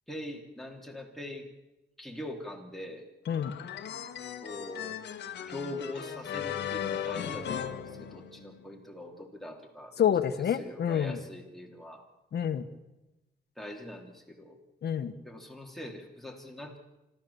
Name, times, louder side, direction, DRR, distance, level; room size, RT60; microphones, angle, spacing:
voice 1, 0.1-1.5 2.0-3.0 4.4-5.0 5.5-10.1 10.5-12.0 13.6-14.6 15.2-16.8, left 1 dB, ahead, 1 dB, 3.1 m, -42 dB
sound 1, 3.3-8.6, left 9 dB, 90° left, 1.4 m, -37 dB
voice 2, 3.3-3.6 10.0-11.2 12.3-12.6 14.8-15.1, left 9 dB, 70° left, 10 dB, 1.3 m, -28 dB
26.0 x 14.0 x 7.1 m, 0.99 s
cardioid pair, 105°, 17 cm